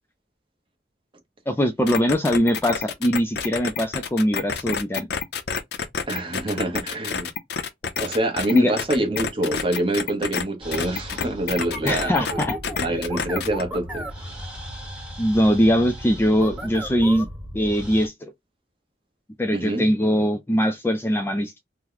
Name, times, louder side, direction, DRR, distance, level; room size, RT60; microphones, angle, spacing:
voice 1, 1.5-5.1 8.5-8.8 11.8-13.0 15.2-17.3 17.5-18.3 19.4-21.6, equal, 10° left, 0.3 m, -22 dB
sound 1, 1.9-10.4 10.7-13.6, left 6 dB, 60° left, 0.5 m, -28 dB
voice 2, 6.1-7.3 8.0-12.2 12.8-14.3 19.5-19.9, right 1 dB, 30° right, 0.9 m, -26 dB
sound 2, 10.6-18.1, equal, 5° right, 1.1 m, -35 dB
2.9 x 2.1 x 3.8 m
head